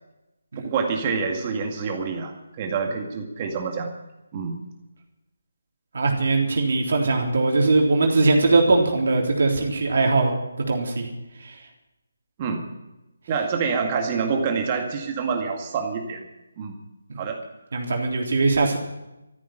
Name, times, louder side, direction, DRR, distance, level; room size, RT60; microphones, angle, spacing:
voice 1, 0.6-3.9 4.3-4.6 12.4-12.6 13.3-16.2 16.6-16.7 17.2-17.4, right 5 dB, 30° right, 3 dB, 2.0 m, -26 dB
voice 2, 5.9-10.3 10.7-11.1 11.4-11.6 17.7-18.8, right 3 dB, 60° right, 0 dB, 3.6 m, -20 dB
14.0 x 10.5 x 9.2 m, 0.96 s
figure-of-eight pair, 155°, 0 cm